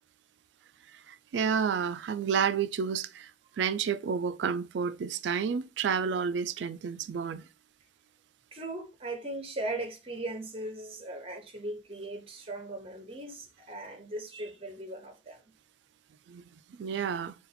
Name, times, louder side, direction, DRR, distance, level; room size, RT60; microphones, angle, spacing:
voice 1, 1.1-3.3 3.6-7.4 16.3-16.4 16.8-17.3, right 6 dB, 70° right, 0.3 m, -30 dB
voice 2, 8.5-15.4, right 2 dB, 30° right, 0.8 m, -38 dB
4.0 x 2.4 x 4.1 m
head